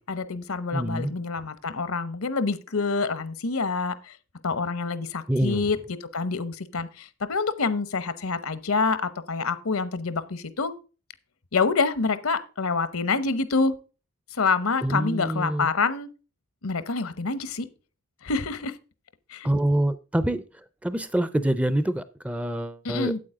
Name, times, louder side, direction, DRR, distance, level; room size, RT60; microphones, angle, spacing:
voice 1, 0.1-3.9 4.4-5.8 6.1-9.0 9.3-10.7 11.5-13.7 14.4-16.1 16.6-17.7 18.2-18.7 19.3-19.5 22.8-23.2, left 4 dB, 75° left, 0.9 m, -26 dB
voice 2, 0.7-1.1 5.3-5.6 14.8-15.7 19.4-20.4 20.8-23.1, right 1 dB, 5° right, 0.4 m, -25 dB
8.7 x 8.3 x 3.6 m
head